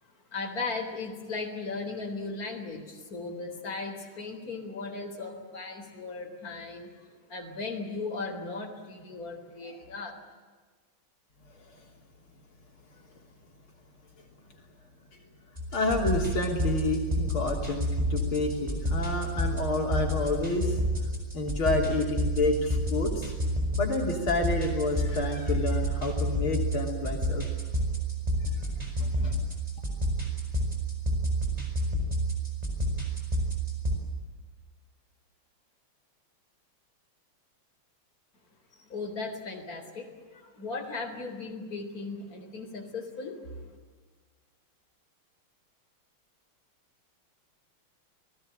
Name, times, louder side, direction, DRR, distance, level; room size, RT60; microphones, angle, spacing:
voice 1, 0.3-10.1 38.7-43.6, left 3 dB, 40° left, 3 dB, 4.4 m, -37 dB
sound 1, 15.6-34.0, right 1 dB, 15° right, 6.5 m, -30 dB
voice 2, 15.7-20.8 21.3-23.3 23.8-27.4 29.0-29.3, left 3 dB, 70° left, 1 dB, 4.1 m, -29 dB
29.0 x 19.5 x 8.9 m, 1.4 s
omnidirectional pair, 2.3 m